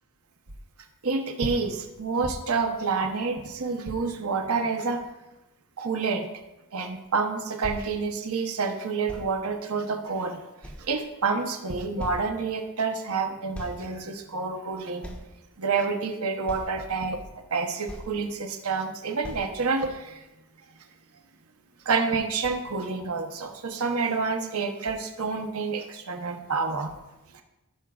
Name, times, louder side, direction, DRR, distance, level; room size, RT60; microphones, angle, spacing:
voice 1, 1.0-5.0 5.8-6.3 6.7-10.4 10.8-15.1 15.6-17.2 17.5-20.3 21.8-27.0 27.3-27.4, right 4 dB, 85° right, 5 dB, 0.9 m, -28 dB
sound 1, 7.6-7.9 9.1-9.3 10.1-10.2 10.6-11.3 11.6-11.7 12.0-12.3 13.5-13.8 14.1-14.2 15.0-15.3 15.9-16.0 16.5-16.8 17.5-17.6 17.9-18.2 18.6-18.7 19.2-19.5 20.1-20.2, equal, 5° left, 1.3 m, -39 dB
15.5 x 6.1 x 2.4 m, 0.98 s
head